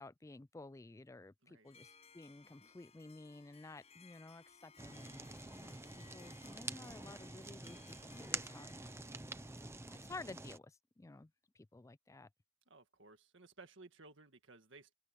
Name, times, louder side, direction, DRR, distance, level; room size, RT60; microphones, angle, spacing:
voice 1, 0.0-9.0 9.9-12.3, left 2 dB, 15° left, 0.3 m, -53 dB
Harp, 1.7-10.4, left 5 dB, 30° left, 6.4 m, -63 dB
Fire, 4.8-10.6, right 3 dB, 10° right, 0.7 m, -47 dB
voice 2, 12.7-14.9, right 3 dB, 60° right, 1.9 m, -58 dB
open air
head